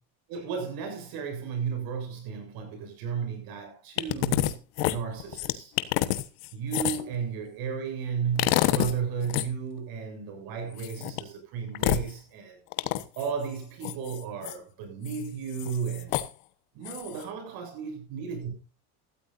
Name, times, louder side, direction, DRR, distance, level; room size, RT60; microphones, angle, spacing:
voice 1, 0.3-5.7 6.5-12.6 13.2-16.1 16.7-18.5, right 6 dB, 60° right, 7.4 m, -34 dB
sound 1, 4.0-4.5 4.8-7.1 8.4-9.0 9.2-9.5 10.8-11.2 11.7-12.1 12.7-13.2 13.8-14.5 15.1-15.2 15.5-16.3 16.8-17.2, left 16 dB, 80° left, 1.3 m, -27 dB
17.5 x 13.5 x 2.6 m
cardioid pair, 155°, 40 cm